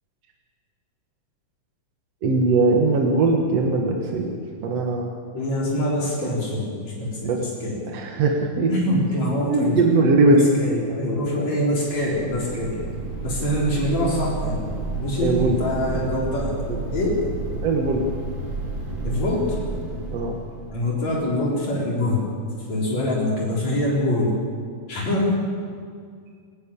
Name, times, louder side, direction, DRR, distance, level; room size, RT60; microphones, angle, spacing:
voice 1, 2.2-5.1 6.2-6.3 7.2-7.4 7.9-9.0 9.4-10.5 15.2-15.6 15.9-16.1 16.7-16.8 17.6-18.0 20.1-20.4, right 3 dB, 55° right, 1 dB, 2.5 m, -20 dB
voice 2, 5.3-7.3 7.6-7.8 8.7-9.8 10.3-12.8 13.2-14.6 15.0-16.6 16.9-17.2 19.0-19.6 20.7-22.3 22.7-24.3 24.9-25.4, left 1 dB, 60° left, -4 dB, 5.0 m, -24 dB
sound 1, 11.9-21.2, right 2 dB, 35° right, 3.3 m, -31 dB
27.5 x 11.0 x 8.5 m, 2.1 s
omnidirectional pair, 3.6 m